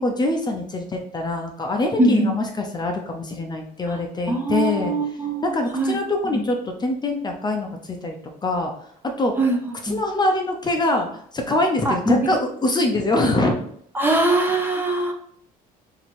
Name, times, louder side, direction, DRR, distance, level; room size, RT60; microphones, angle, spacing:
voice 1, 0.0-4.9 5.4-8.2 8.4-8.7 9.0-9.5 9.8-13.6, left 2 dB, 25° left, 2 dB, 0.6 m, -24 dB
voice 2, 4.3-6.0 6.3-6.4 9.4-9.6 9.9-10.0 11.8-12.2 13.9-15.1, right 2 dB, 10° right, 2 dB, 0.7 m, -21 dB
2.9 x 2.8 x 4.2 m, 0.65 s
cardioid pair, 110°, 17 cm